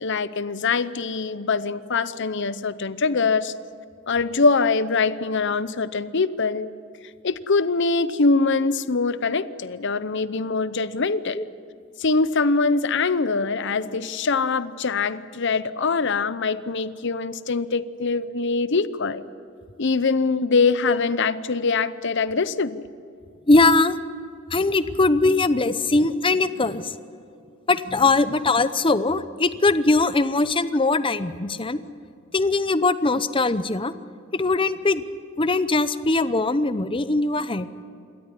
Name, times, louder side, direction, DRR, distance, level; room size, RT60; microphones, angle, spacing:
voice 1, 0.0-3.5 4.1-6.7 7.2-11.4 12.0-19.2 19.8-22.8, left 4 dB, 60° left, 15 dB, 0.8 m, -23 dB
voice 2, 23.5-24.0 24.5-26.9 27.7-31.8 32.3-33.9 34.3-35.0 35.4-37.7, left 3 dB, 25° left, 14 dB, 0.8 m, -21 dB
28.0 x 13.0 x 9.9 m, 2.6 s
head